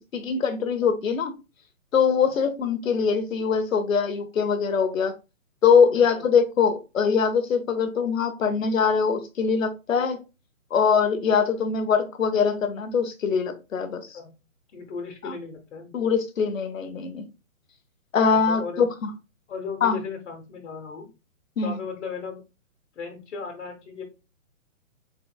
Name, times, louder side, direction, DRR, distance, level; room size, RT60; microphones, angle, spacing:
voice 1, 0.1-1.3 1.9-5.1 5.6-10.2 10.7-14.1 15.2-15.3 15.9-17.3 18.1-19.1 19.8-20.0 21.6-21.8, left 6 dB, 70° left, 1.0 m, -22 dB
voice 2, 14.7-16.0 18.3-18.9 19.5-21.1 21.6-22.4 22.9-24.0, left 5 dB, 55° left, 1.4 m, -36 dB
4.1 x 4.0 x 2.3 m
hypercardioid pair, 160°, 42 cm